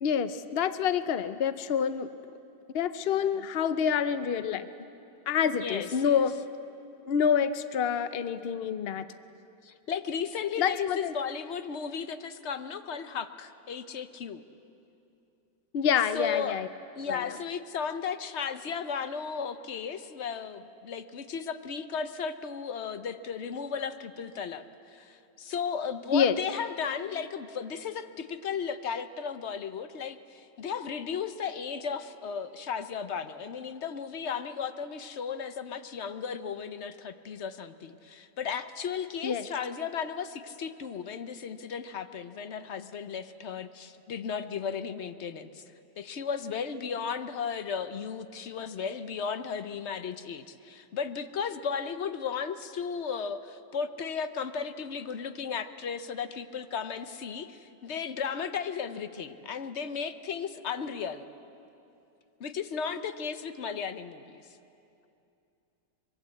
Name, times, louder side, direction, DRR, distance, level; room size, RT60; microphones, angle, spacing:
voice 1, 0.0-2.1 2.7-4.7 5.3-6.3 7.1-9.1 10.6-11.1 15.7-16.7 17.1-17.2 26.1-26.4 39.2-39.4, left 7 dB, 80° left, 11 dB, 0.5 m, -27 dB
voice 2, 5.5-6.2 9.6-14.4 16.1-16.6 17.0-45.6 46.0-61.3 62.4-64.6, left 6 dB, 50° left, 10 dB, 0.9 m, -35 dB
23.5 x 23.0 x 8.4 m, 2.7 s
omnidirectional pair, 1.9 m